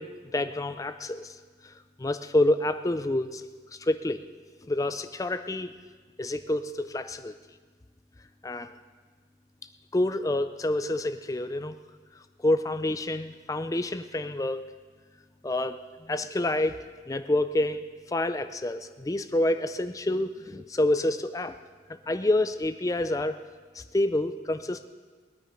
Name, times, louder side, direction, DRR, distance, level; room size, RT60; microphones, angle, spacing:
voice 1, 0.0-1.4 1.6-3.4 3.8-4.2 4.7-5.7 6.2-7.3 8.4-8.7 9.9-11.8 12.4-14.7 15.4-21.6 22.1-23.4 23.7-24.9, left 1 dB, 20° left, 11 dB, 0.4 m, -28 dB
20.5 x 9.8 x 5.1 m, 1.5 s
head